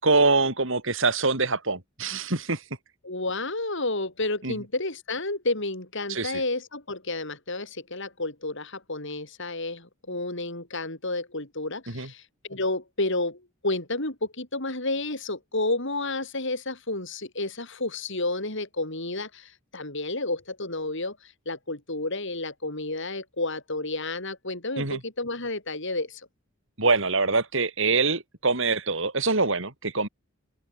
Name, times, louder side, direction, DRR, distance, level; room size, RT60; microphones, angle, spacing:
voice 1, 0.0-2.6 4.4-4.6 6.1-6.4 11.9-12.1 24.8-25.0 26.8-30.1, right 3 dB, 65° right, 4.2 m, -24 dB
voice 2, 3.0-12.2 12.5-26.2, left 2 dB, 65° left, 7.8 m, -31 dB
head